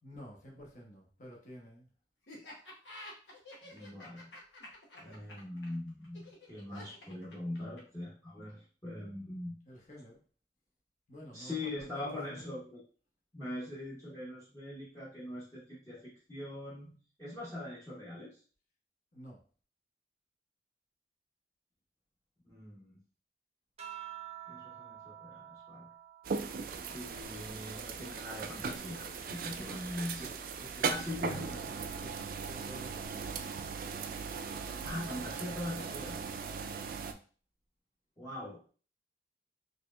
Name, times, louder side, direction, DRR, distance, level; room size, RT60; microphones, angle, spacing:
voice 1, 0.0-1.9 9.7-10.2 11.1-12.4 19.1-19.4 29.5-29.8 30.2-31.5 32.0-33.3 36.5-37.1, equal, 45° left, -3 dB, 1.0 m, -51 dB
Laughter, 2.3-8.0, left 1 dB, 80° left, 1.0 m, -50 dB
voice 2, 3.6-4.3 5.0-9.6 11.3-12.8 13.3-18.4 22.5-22.9 24.5-25.9 26.9-30.2 30.9-31.8 34.8-36.2 38.2-38.7, left 1 dB, 15° left, -9 dB, 1.0 m, -42 dB
sound 1, 23.8-28.6 29.0-30.8 32.0-32.5, right 10 dB, 35° right, 0.7 m, -52 dB
sound 2, 26.2-37.1, right 5 dB, 50° right, 0.3 m, -38 dB
4.3 x 3.2 x 2.4 m, 0.40 s
head